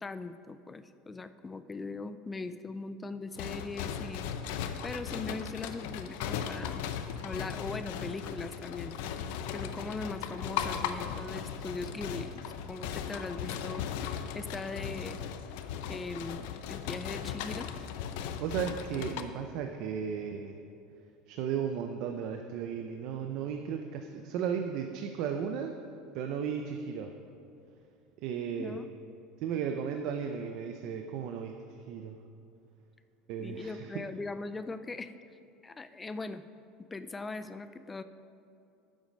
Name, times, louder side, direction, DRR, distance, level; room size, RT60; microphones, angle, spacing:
voice 1, 0.0-4.2 4.8-6.8 7.2-9.0 9.5-12.4 12.7-13.8 14.4-15.2 15.9-17.7 28.6-28.9 33.4-35.1 35.6-36.4 36.9-38.0, left 3 dB, 10° left, 11 dB, 0.3 m, -40 dB
sound 1, 3.4-19.2, left 8 dB, 70° left, 0.6 m, -37 dB
voice 2, 18.4-20.6 21.3-25.7 26.1-27.1 28.2-28.8 29.4-32.2 33.3-33.9, right 7 dB, 50° right, 5 dB, 0.6 m, -35 dB
12.5 x 7.3 x 5.2 m, 2.6 s
cardioid pair, 170°, 0 cm